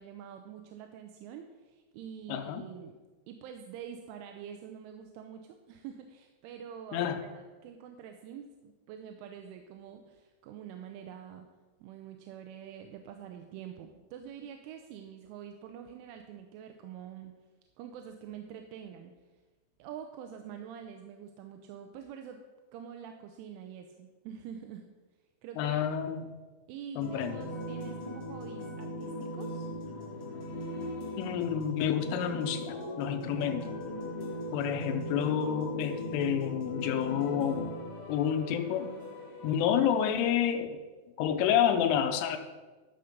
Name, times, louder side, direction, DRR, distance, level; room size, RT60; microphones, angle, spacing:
voice 1, 0.0-3.0 3.3-11.5 11.8-17.3 17.8-19.1 19.8-22.4 22.7-24.9 25.4-25.8 26.7-29.7, right 8 dB, 85° right, 5 dB, 3.1 m, -46 dB
voice 2, 2.3-2.6 6.9-7.2 25.6-26.2 27.0-27.4 31.2-32.6 33.0-33.7 34.5-37.7 38.1-38.9 39.4-40.8 41.2-42.4, left 9 dB, 85° left, 7 dB, 3.3 m, -29 dB
sound 1, 27.0-39.7, left 1 dB, 45° left, 3.0 m, -39 dB
12.5 x 6.5 x 5.1 m, 1.3 s
omnidirectional pair, 5.6 m